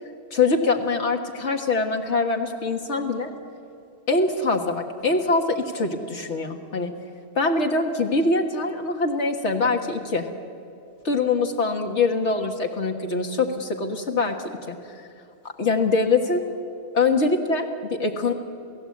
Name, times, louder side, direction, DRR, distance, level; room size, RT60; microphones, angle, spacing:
voice 1, 0.3-3.3 4.1-6.9 7.4-10.3 11.0-15.0 15.6-16.4 16.9-18.3, left 3 dB, 90° left, 2 dB, 1.8 m, -23 dB
29.0 x 16.5 x 8.5 m, 2.5 s
omnidirectional pair, 1.1 m